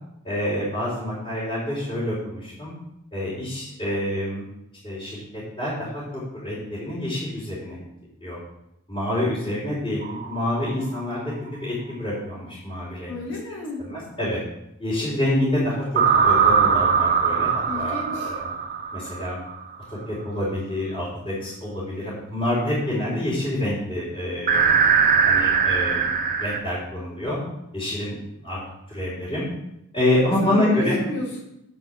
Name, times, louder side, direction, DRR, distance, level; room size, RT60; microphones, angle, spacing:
voice 1, 0.2-2.7 3.1-4.4 4.8-7.8 8.2-8.4 8.9-11.2 11.5-13.1 13.8-14.4 14.8-18.5 18.9-19.4 19.9-24.7 25.2-26.1 26.4-27.4 27.7-28.1 28.4-28.6 28.9-29.4 29.9-31.0, left 1 dB, 25° left, -10 dB, 3.9 m, -27 dB
sound 1, 10.0-10.8 16.0-19.6 24.5-26.6, right 6 dB, 35° right, 0.8 m, -21 dB
voice 2, 13.1-13.8 17.7-18.3 30.2-31.4, left 2 dB, 75° left, -4 dB, 3.9 m, -32 dB
7.3 x 6.1 x 7.0 m, 0.84 s
head